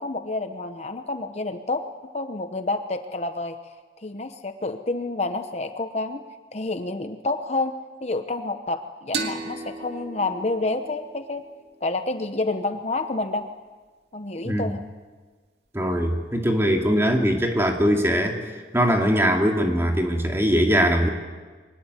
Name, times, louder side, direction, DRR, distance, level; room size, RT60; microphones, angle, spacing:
voice 1, 0.0-1.8 2.1-3.6 4.0-6.2 6.5-7.7 8.0-11.4 11.8-13.5 14.1-14.8, left 2 dB, 35° left, 7 dB, 0.9 m, -28 dB
sound 1, 9.1-12.5, right 3 dB, 70° right, 2.2 m, -36 dB
voice 2, 15.7-18.4 18.7-21.1, equal, 15° right, 2 dB, 2.4 m, -21 dB
23.5 x 19.0 x 8.2 m, 1.4 s
head